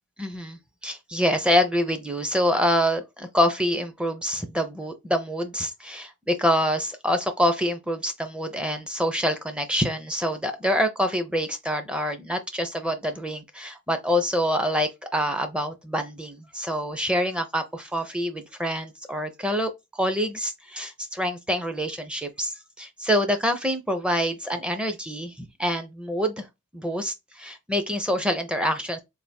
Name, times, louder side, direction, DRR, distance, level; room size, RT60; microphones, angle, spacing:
voice 1, 0.2-26.5 26.7-29.0, equal, 5° right, 0.5 m, -26 dB
3.4 x 2.4 x 4.2 m
head